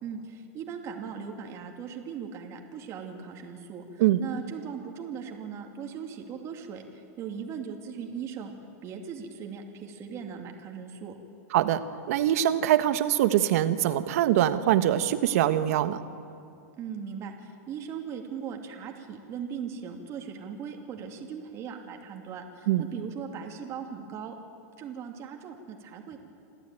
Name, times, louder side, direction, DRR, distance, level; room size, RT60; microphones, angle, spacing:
voice 1, 0.0-8.5 8.8-11.1 16.8-24.4 24.8-26.2, right 7 dB, 35° right, 2 dB, 2.6 m, -39 dB
voice 2, 11.5-16.0 22.7-22.8, right 12 dB, 65° right, 11 dB, 1.3 m, -23 dB
27.5 x 13.5 x 9.2 m, 2.5 s
supercardioid pair, 135°, 9 cm